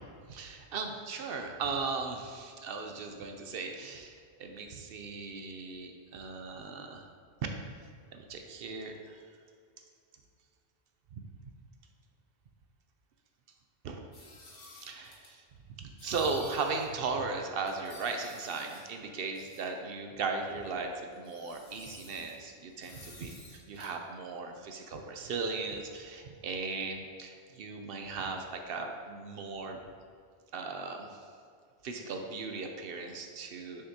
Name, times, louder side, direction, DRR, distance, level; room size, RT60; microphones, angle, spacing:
voice 1, 0.3-7.0 7.4-9.2 13.8-14.0 14.8-15.4 15.8-29.8 30.5-31.2 31.8-33.9, right 4 dB, 65° right, 4 dB, 0.7 m, -37 dB
sound 1, 14.1-15.3 16.0-16.9 17.2-17.3 17.7-18.9 19.3-19.7 20.7-20.8 21.1-22.3 22.8-23.9, left 2 dB, 60° left, 1.2 m, -51 dB
6.4 x 5.7 x 2.8 m, 2.2 s
omnidirectional pair, 1.1 m